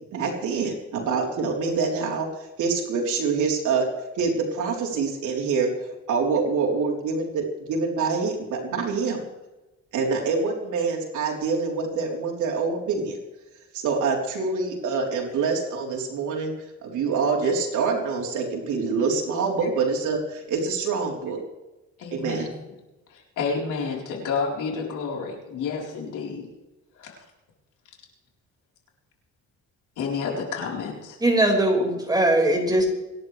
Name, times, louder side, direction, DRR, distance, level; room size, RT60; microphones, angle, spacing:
voice 1, 0.1-2.3 2.6-3.9 4.2-5.7 6.1-9.2 9.9-13.2 13.7-16.5 16.8-21.4 22.1-22.5, right 4 dB, 80° right, 0 dB, 4.0 m, -25 dB
voice 2, 22.0-22.6 23.1-26.5 26.9-27.2 30.0-31.2, left 5 dB, 85° left, -1 dB, 4.3 m, -30 dB
voice 3, 31.2-32.9, right 1 dB, 15° right, 1 dB, 5.3 m, -20 dB
26.0 x 11.0 x 3.4 m, 1.1 s
cardioid pair, 90°, 30 cm